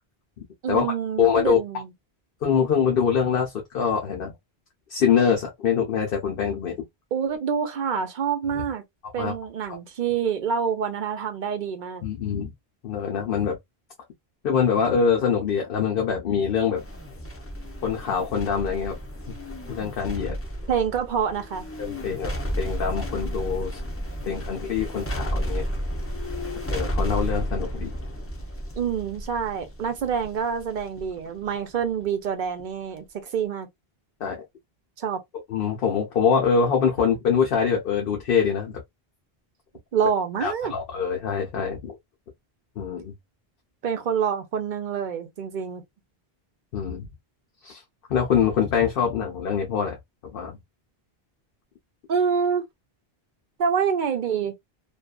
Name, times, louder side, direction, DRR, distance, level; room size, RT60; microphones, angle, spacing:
voice 1, 0.6-1.9 7.1-8.8 9.1-12.0 20.7-21.7 28.8-33.0 33.3-33.7 35.0-35.2 39.9-40.7 43.8-45.8 52.1-52.6 53.6-54.5, right 7 dB, 55° right, 0.7 m, -26 dB
voice 2, 1.2-1.6 2.4-4.3 4.9-6.7 9.2-9.3 12.0-12.5 12.8-13.6 14.4-16.8 17.8-19.0 19.3-19.4 19.7-20.3 21.8-22.3 22.6-23.8 24.2-25.6 26.7-27.9 34.2-34.4 35.5-38.7 40.4-41.9 42.8-43.1 46.7-47.1 47.6-47.8 48.1-50.0 50.3-50.6, left 7 dB, 65° left, 0.9 m, -24 dB
sound 1, 16.8-32.2 32.6-32.7, equal, 20° left, 0.4 m, -32 dB
2.6 x 2.4 x 2.2 m
omnidirectional pair, 1.0 m